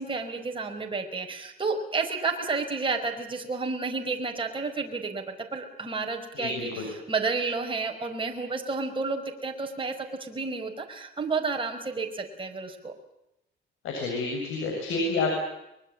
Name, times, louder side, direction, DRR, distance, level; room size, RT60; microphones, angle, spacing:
voice 1, 0.0-12.9, right 4 dB, 25° right, 2 dB, 5.1 m, -31 dB
voice 2, 6.4-6.9 13.8-15.4, left 3 dB, 85° left, 1 dB, 7.5 m, -29 dB
24.0 x 22.0 x 8.7 m, 0.85 s
cardioid pair, 90°, 20 cm